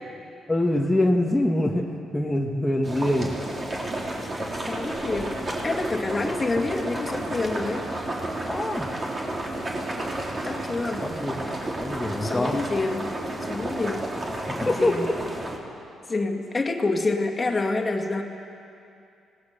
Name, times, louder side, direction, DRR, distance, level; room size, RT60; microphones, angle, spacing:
voice 1, 0.5-3.3 8.5-8.9 11.0-11.4 11.8-12.6 14.5-15.0, left 1 dB, 10° left, -2 dB, 1.7 m, -24 dB
sound 1, 2.8-15.6, right 1 dB, 30° right, 3.8 m, -31 dB
voice 2, 4.7-5.4 5.6-7.8 10.4-11.1 12.2-13.1 13.5-14.1 14.7-15.1 16.1-18.2, left 3 dB, 25° left, 3 dB, 2.3 m, -27 dB
26.0 x 19.0 x 6.9 m, 2.6 s
cardioid pair, 90°, 0 cm